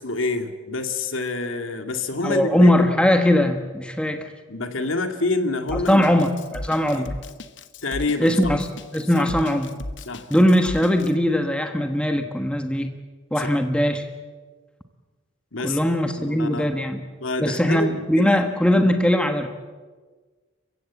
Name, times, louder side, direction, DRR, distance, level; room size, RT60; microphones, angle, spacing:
voice 1, 0.0-2.9 4.5-6.1 6.9-7.1 7.8-8.4 9.1-9.3 10.1-10.3 13.4-13.5 15.5-15.8 16.2-16.7 17.2-17.9 18.2-18.4 18.8-18.9, left 3 dB, 85° left, 7 dB, 2.2 m, -27 dB
voice 2, 2.2-4.3 5.7-7.1 8.2-8.7 8.9-9.7 10.3-12.9 13.3-14.1 15.6-17.0 17.4-19.5, left 1 dB, 5° left, 6 dB, 1.3 m, -20 dB
Drum kit, 5.7-11.1, left 1 dB, 65° left, 1.1 m, -36 dB
29.5 x 15.5 x 8.2 m, 1.4 s
head